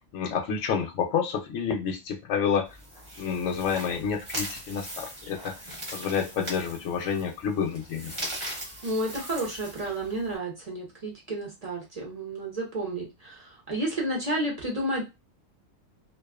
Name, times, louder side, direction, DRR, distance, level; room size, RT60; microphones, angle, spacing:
voice 1, 0.0-2.8 3.2-5.6 5.9-8.1, left 7 dB, 70° left, 5 dB, 0.9 m, -29 dB
sound 1, 2.6-10.4, right 1 dB, 25° right, 0.9 m, -40 dB
voice 2, 8.8-15.0, right 1 dB, 45° right, -2 dB, 0.5 m, -31 dB
2.4 x 2.3 x 2.3 m, 0.24 s
omnidirectional pair, 1.4 m